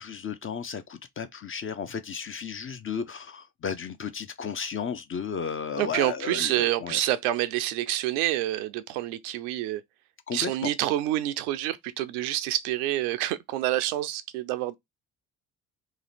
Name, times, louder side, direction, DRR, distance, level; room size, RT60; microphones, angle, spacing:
voice 1, 0.0-7.0 10.3-10.7, left 6 dB, 25° left, 0.6 m, -34 dB
voice 2, 5.8-9.8 10.3-14.7, right 14 dB, 65° right, 0.6 m, -27 dB
2.9 x 2.8 x 4.0 m
figure-of-eight pair, 45°, 48 cm